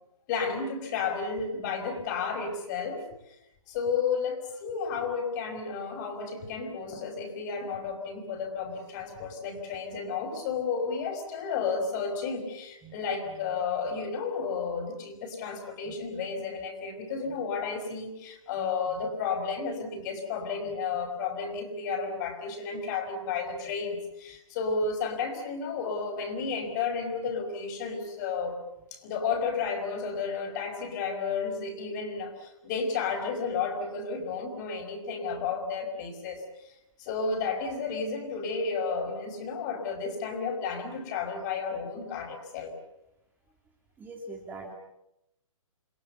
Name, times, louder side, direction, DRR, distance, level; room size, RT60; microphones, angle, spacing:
voice 1, 0.3-3.4 3.7-28.6 28.9-36.7 37.0-42.7, left 5 dB, 35° left, 5 dB, 5.5 m, -32 dB
voice 2, 13.2-13.6 15.9-16.0 17.3-17.4 18.9-19.1 20.7-20.8 44.0-44.7, right 2 dB, 10° right, 2 dB, 2.6 m, -44 dB
29.0 x 21.5 x 7.0 m, 0.85 s
hypercardioid pair, 150°, 17 cm